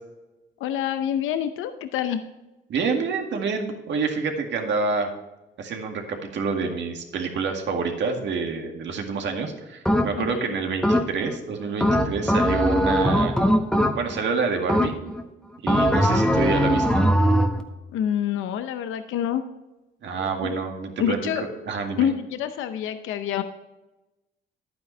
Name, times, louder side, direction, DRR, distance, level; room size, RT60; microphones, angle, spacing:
voice 1, 0.6-2.2 10.2-10.6 17.9-19.4 20.4-20.6 21.0-21.4 22.0-23.4, left 9 dB, 90° left, 9 dB, 0.7 m, -27 dB
voice 2, 2.7-5.1 5.6-13.3 14.0-14.9 15.6-17.0 20.0-22.1, right 4 dB, 65° right, 3 dB, 2.0 m, -27 dB
sound 1, 9.9-10.4 10.8-11.4 11.8-14.3 14.7-15.2 15.7-17.6, equal, 5° left, 1.3 m, -20 dB
11.0 x 9.2 x 3.3 m, 1.0 s
cardioid pair, 90°, 20 cm